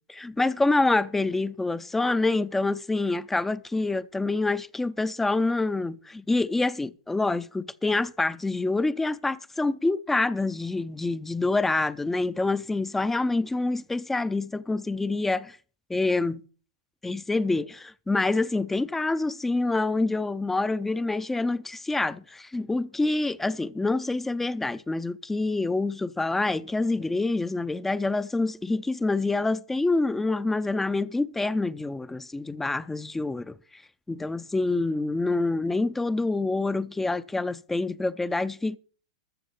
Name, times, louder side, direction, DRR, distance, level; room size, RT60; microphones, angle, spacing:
voice 1, 0.1-15.6 15.9-16.4 17.0-33.8 34.1-38.8, left 2 dB, 5° left, 0.5 m, -26 dB
13.5 x 6.9 x 6.7 m
hypercardioid pair, 130°, 3 cm